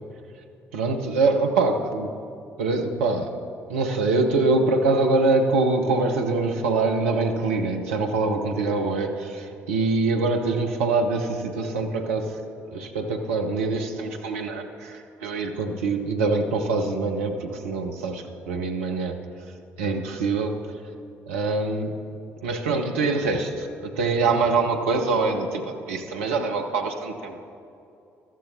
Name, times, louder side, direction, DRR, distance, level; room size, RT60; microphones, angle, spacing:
voice 1, 0.7-2.1 2.6-3.3 3.7-19.2 19.8-20.7 21.3-22.0 22.4-27.4, right 3 dB, 75° right, 4 dB, 0.9 m, -24 dB
18.5 x 13.5 x 2.7 m, 2.7 s
figure-of-eight pair, 45°, 7 cm